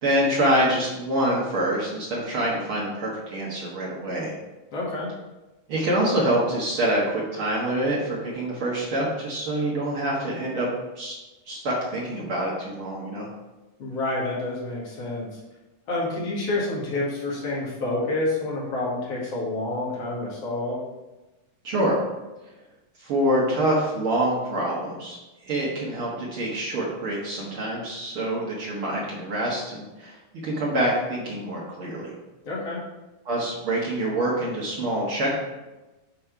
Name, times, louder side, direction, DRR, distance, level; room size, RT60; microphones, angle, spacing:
voice 1, 0.0-4.4 5.7-10.7 11.0-11.1 11.5-13.3 21.6-22.0 23.0-25.2 25.4-30.1 30.4-32.1 33.2-35.3, right 1 dB, 60° right, -5 dB, 1.3 m, -26 dB
voice 2, 4.7-5.1 13.8-15.4 15.9-20.8 32.5-32.8, left 2 dB, 45° left, -6 dB, 2.4 m, -28 dB
7.4 x 4.2 x 4.7 m, 1.1 s
omnidirectional pair, 4.5 m